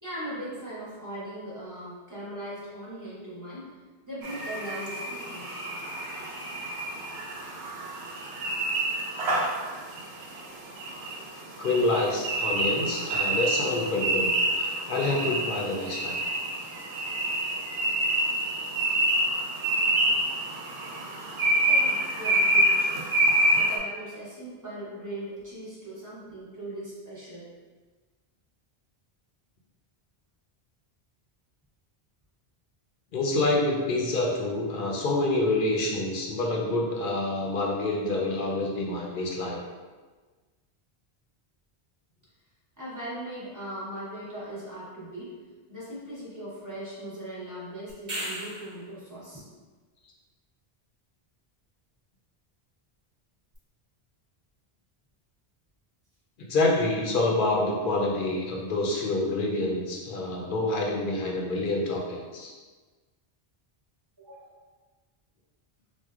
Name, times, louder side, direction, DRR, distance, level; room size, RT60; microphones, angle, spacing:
voice 1, 0.0-3.7 4.0-5.6 21.7-23.1 23.5-27.5 42.8-45.3 45.7-49.4 64.2-64.6, right 1 dB, 20° right, -9 dB, 1.0 m, -39 dB
sound 1, 4.2-23.8, right 1 dB, 85° right, 0.9 m, -27 dB
voice 2, 11.6-14.3 14.6-16.2 33.1-39.6 56.5-62.5, left 2 dB, 60° left, -1 dB, 0.7 m, -27 dB
sound 2, 47.9-48.9 53.5-53.6, right 1 dB, 50° right, 0.9 m, -35 dB
4.4 x 2.1 x 2.3 m, 1.3 s
omnidirectional pair, 1.1 m